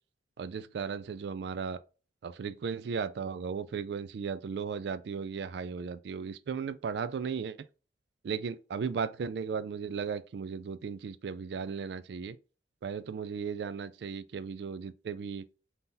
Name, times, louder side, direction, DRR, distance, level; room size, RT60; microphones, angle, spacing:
voice 1, 0.4-1.8 2.2-7.6 8.2-12.4 12.8-15.4, right 6 dB, 60° right, 0.3 m, -36 dB
3.8 x 2.8 x 3.9 m
head